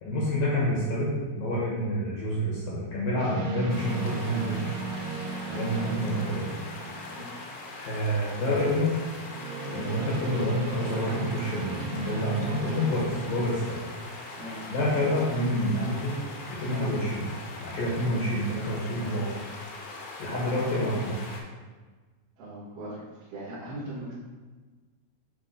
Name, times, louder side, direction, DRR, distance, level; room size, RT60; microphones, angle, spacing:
voice 1, 0.0-4.7 5.5-6.5 7.8-8.9 9.7-13.8 14.7-16.2 16.5-17.3 17.6-19.4 20.2-21.2, equal, 65° left, -6 dB, 2.5 m, -28 dB
sound 1, 3.2-7.6 9.2-14.0, right 4 dB, 80° right, 2.0 m, -36 dB
sound 2, 3.7-21.4, left 3 dB, 85° left, 3.2 m, -41 dB
voice 2, 22.4-24.1, right 1 dB, 60° right, -12 dB, 2.6 m, -39 dB
7.9 x 3.5 x 3.8 m, 1.3 s
omnidirectional pair, 4.9 m